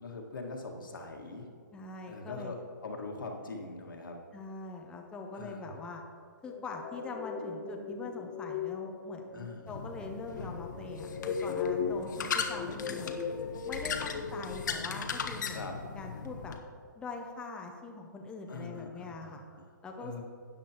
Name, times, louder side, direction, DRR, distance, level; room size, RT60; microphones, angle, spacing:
voice 1, 0.0-1.5 2.1-2.6 2.8-4.2 5.3-5.8 9.3-9.8 13.9-14.1 15.5-15.7 18.5-19.7 20.0-20.2, left 3 dB, 80° left, 1 dB, 1.7 m, -42 dB
voice 2, 1.7-2.5 4.3-6.0 6.4-13.2 13.7-15.6 16.0-16.6 17.0-19.4 19.8-20.2, left 3 dB, 10° left, 2 dB, 0.6 m, -43 dB
sound 1, 6.5-13.9, left 6 dB, 40° left, 1.2 m, -38 dB
sound 2, 9.7-16.6, left 6 dB, 65° left, 0.9 m, -38 dB
12.5 x 9.0 x 2.9 m, 2.1 s
hypercardioid pair, 140°, 11 cm